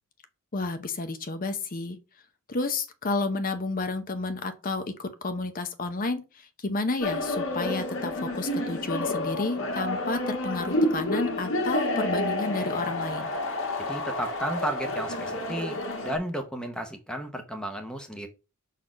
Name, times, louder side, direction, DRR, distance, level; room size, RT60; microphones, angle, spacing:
voice 1, 0.5-2.0 2.5-13.3, left 3 dB, 40° left, 0.7 m, -31 dB
sound 1, 7.0-16.2, left 1 dB, 60° left, 1.7 m, -29 dB
voice 2, 13.8-15.8 16.0-18.3, equal, 5° left, 0.7 m, -33 dB
6.0 x 4.1 x 5.0 m
head